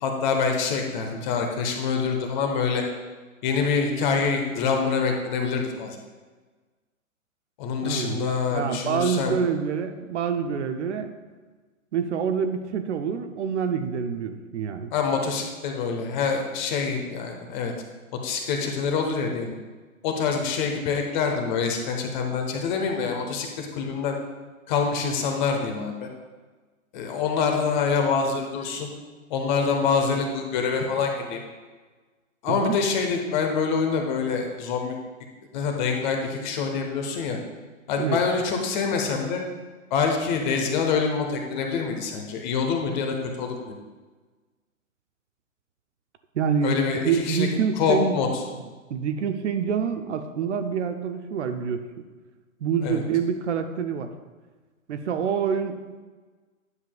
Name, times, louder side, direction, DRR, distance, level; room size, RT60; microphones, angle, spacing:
voice 1, 0.0-2.8 3.4-6.0 7.6-9.3 14.9-17.7 18.2-19.5 20.0-24.2 24.7-26.1 26.9-28.9 29.3-31.4 32.4-34.9 35.5-37.4 37.9-39.4 39.9-43.8 46.6-47.5 47.8-48.4 52.8-53.0, left 5 dB, 35° left, 3 dB, 1.1 m, -25 dB
voice 2, 7.8-11.1 11.9-14.9 32.5-32.8 38.0-38.2 46.3-46.8 47.0-48.3 48.9-51.8 52.6-54.1 54.9-56.0, right 6 dB, 55° right, 8 dB, 0.7 m, -26 dB
9.7 x 7.3 x 2.3 m, 1.3 s
hypercardioid pair, 125°, 41 cm